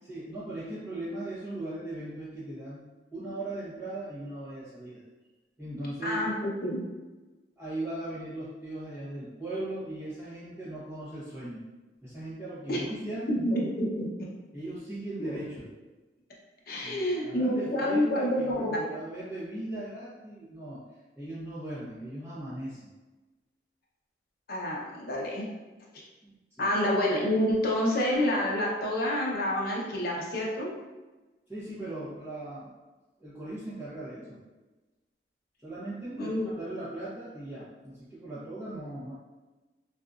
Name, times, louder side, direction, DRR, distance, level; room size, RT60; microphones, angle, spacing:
voice 1, 0.0-5.0 5.6-6.3 7.6-11.6 12.0-13.4 14.5-15.7 16.8-20.8 21.2-22.9 26.2-26.7 31.5-32.7 33.2-34.4 35.6-39.1, right 1 dB, 10° right, -16 dB, 0.9 m, -38 dB
voice 2, 6.0-6.8 12.7-12.9 13.3-14.1 15.2-15.4 16.7-18.9 24.5-25.5 26.6-30.7 36.2-36.5, left 1 dB, 60° left, -3 dB, 0.6 m, -28 dB
2.7 x 2.5 x 2.3 m, 1.2 s
head